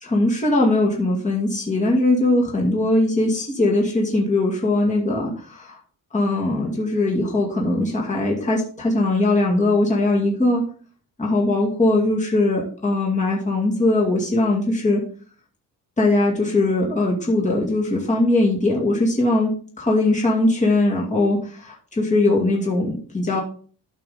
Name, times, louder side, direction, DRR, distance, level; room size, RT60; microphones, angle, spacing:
voice 1, 0.0-5.8 6.1-10.6 11.2-15.0 16.0-23.4, left 2 dB, 20° left, -2 dB, 2.3 m, -20 dB
12.5 x 5.6 x 3.9 m, 0.43 s
wide cardioid pair, 170°, 38 cm